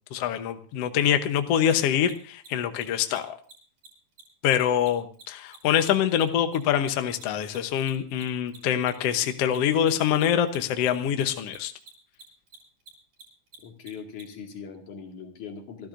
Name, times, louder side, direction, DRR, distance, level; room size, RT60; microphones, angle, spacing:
voice 1, 0.1-3.4 4.4-11.7, left 9 dB, 65° left, 8 dB, 1.9 m, -25 dB
Mechanisms, 1.6-1.7 2.0-2.1 2.4-2.5 2.7-2.8 3.1-3.2 3.4-3.5 3.8-3.9 4.2-6.9 7.1-14.2, right 3 dB, 75° right, 8.6 m, -48 dB
voice 2, 13.6-15.9, left 6 dB, 80° left, 3 dB, 3.6 m, -40 dB
27.0 x 13.0 x 2.6 m, 0.40 s
omnidirectional pair, 3.4 m